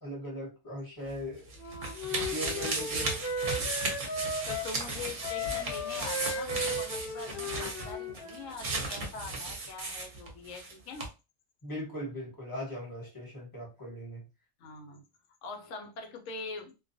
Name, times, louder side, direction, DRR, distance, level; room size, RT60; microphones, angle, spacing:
voice 1, 0.0-1.4 2.3-3.1 11.6-14.2, equal, 20° left, 1.0 m, -39 dB
sound 1, 1.1-10.7 11.0-11.1, right 3 dB, 50° right, 0.7 m, -35 dB
Wind instrument woodwind instrument, 1.6-4.7 5.2-8.5, left 1 dB, 55° left, 0.8 m, -36 dB
voice 2, 4.5-11.1 14.6-15.0 15.4-16.7, left 4 dB, 75° left, 1.0 m, -43 dB
2.3 x 2.3 x 2.5 m
omnidirectional pair, 1.3 m